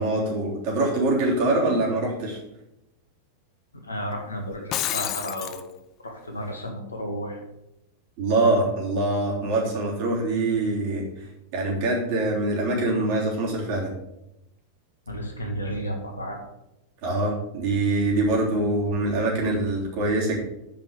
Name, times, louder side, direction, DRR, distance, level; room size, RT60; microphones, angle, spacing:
voice 1, 0.0-2.4 8.2-11.0 11.5-13.9 17.0-20.4, right 2 dB, 45° right, -3 dB, 3.5 m, -24 dB
voice 2, 3.8-5.7 6.0-7.4 15.1-16.4, equal, 80° left, 2 dB, 2.0 m, -32 dB
Shatter, 4.5-5.6, left 12 dB, 35° left, 0.5 m, -29 dB
8.9 x 5.4 x 7.0 m, 0.86 s
figure-of-eight pair, 90°, 0 cm